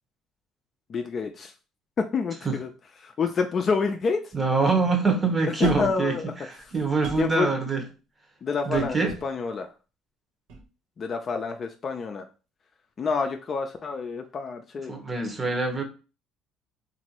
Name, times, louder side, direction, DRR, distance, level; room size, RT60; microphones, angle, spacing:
voice 1, 0.9-1.5 2.0-2.7 3.0-4.3 5.6-6.3 7.2-7.5 8.4-9.7 11.0-12.2 13.0-15.0, left 5 dB, 45° left, 5 dB, 0.4 m, -28 dB
voice 2, 4.3-7.8 8.7-9.2 14.9-15.8, right 4 dB, 25° right, 4 dB, 1.0 m, -25 dB
sound 1, 5.6-6.1 6.6-7.4 8.7-9.3 10.5-10.6, right 2 dB, 80° right, 0.8 m, -39 dB
3.0 x 2.6 x 2.9 m, 0.33 s
supercardioid pair, 75°, 0 cm